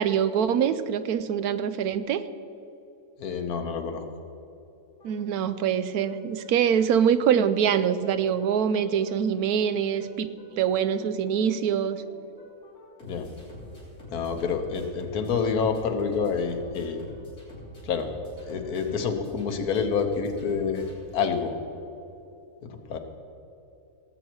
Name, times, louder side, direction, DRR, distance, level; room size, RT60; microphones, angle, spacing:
voice 1, 0.0-2.2 5.0-10.3 10.6-12.0, right 8 dB, 85° right, 13 dB, 1.1 m, -24 dB
voice 2, 3.2-4.0 13.0-13.2 14.1-17.0 17.8-18.1 18.5-20.8 21.1-21.5 22.6-23.0, left 6 dB, 80° left, 6 dB, 1.5 m, -28 dB
sound 1, 5.0-21.6, equal, 55° left, 3.7 m, -47 dB
18.0 x 8.2 x 4.6 m, 2.9 s
omnidirectional pair, 1.6 m